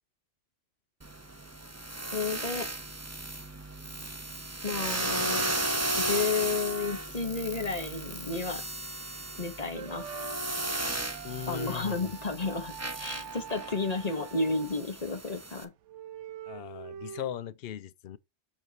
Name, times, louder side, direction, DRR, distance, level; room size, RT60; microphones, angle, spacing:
sound 1, 1.0-15.6, right 1 dB, 15° right, 0.8 m, -35 dB
voice 1, 2.1-2.7 4.6-5.5 6.0-8.6 9.4-10.1 11.5-15.7, left 4 dB, 35° left, 1.2 m, -32 dB
sound 2, 9.7-14.8 15.3-15.4 15.8-17.4, right 10 dB, 85° right, 1.0 m, -45 dB
voice 2, 11.2-12.0 16.5-18.2, left 11 dB, 60° left, 0.8 m, -38 dB
7.5 x 4.7 x 4.0 m
omnidirectional pair, 1.2 m